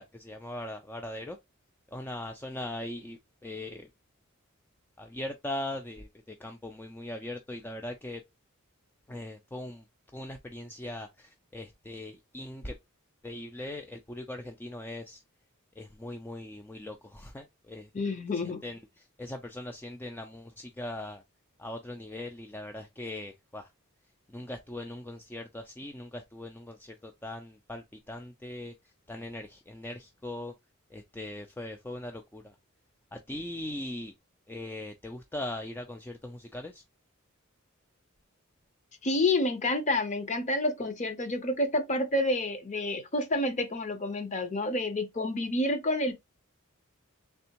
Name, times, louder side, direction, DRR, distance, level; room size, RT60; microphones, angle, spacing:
voice 1, 0.0-1.4 1.9-3.9 5.0-8.2 9.1-9.8 10.1-12.8 13.2-15.2 15.8-18.2 18.4-21.2 21.6-23.7 24.3-28.7 29.1-30.5 30.9-32.5 33.1-34.1 34.5-36.8, left 1 dB, 10° left, 0.3 m, -40 dB
voice 2, 17.9-18.6 39.0-46.1, left 2 dB, 35° left, 0.7 m, -29 dB
3.5 x 3.3 x 2.9 m
head